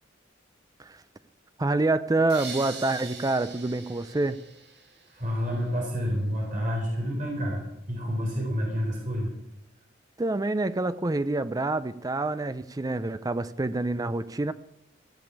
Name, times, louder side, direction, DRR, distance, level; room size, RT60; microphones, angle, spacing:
voice 1, 1.6-4.4 10.2-14.5, right 2 dB, 20° right, 14 dB, 0.5 m, -27 dB
sound 1, 2.3-5.3, right 5 dB, 60° right, 2.3 m, -42 dB
voice 2, 5.1-7.6 7.9-9.3, equal, 45° right, -2 dB, 4.1 m, -29 dB
15.5 x 7.0 x 8.4 m, 0.85 s
head